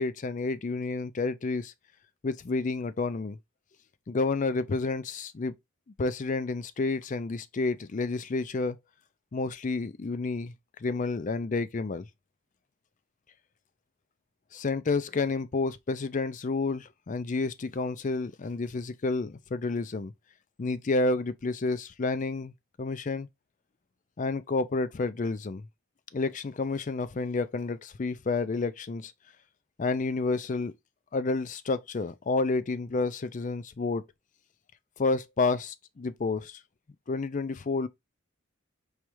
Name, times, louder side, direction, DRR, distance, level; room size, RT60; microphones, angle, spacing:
voice 1, 0.0-1.7 2.2-3.4 4.1-5.6 6.0-8.8 9.3-10.5 10.8-12.1 14.5-20.1 20.6-22.5 22.8-23.3 24.2-25.7 26.1-29.1 29.8-30.7 31.1-34.0 35.0-36.6 37.1-37.9, left 3 dB, 35° left, 0.4 m, -30 dB
4.8 x 3.2 x 3.0 m
head